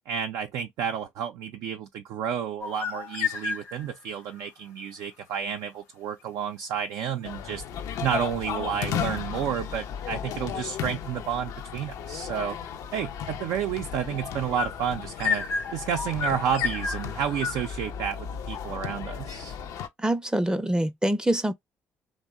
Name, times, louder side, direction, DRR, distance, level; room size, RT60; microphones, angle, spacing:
voice 1, 0.1-7.6 8.0-12.6 12.9-15.4 15.7-19.6, right 8 dB, 70° right, 0.4 m, -31 dB
sound 1, 2.6-4.0 14.6-17.7, left 6 dB, 85° left, 0.9 m, -31 dB
sound 2, 7.2-19.9, left 8 dB, 70° left, 0.4 m, -35 dB
voice 2, 20.0-21.5, right 1 dB, 10° right, 0.5 m, -25 dB
2.8 x 2.0 x 2.2 m
hypercardioid pair, 55°, 6 cm